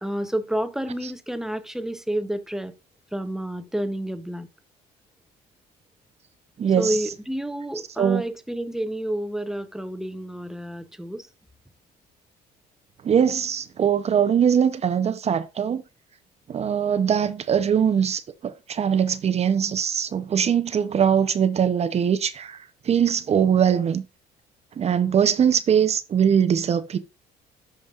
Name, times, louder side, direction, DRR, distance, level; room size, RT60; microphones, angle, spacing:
voice 1, 0.0-2.7 3.1-4.5 6.8-11.3, right 1 dB, 5° right, 0.7 m, -29 dB
voice 2, 6.6-7.1 8.0-8.2 13.0-15.8 16.5-24.0 24.8-27.0, right 8 dB, 40° right, 0.7 m, -22 dB
12.0 x 5.2 x 2.4 m
cardioid pair, 110°, 17 cm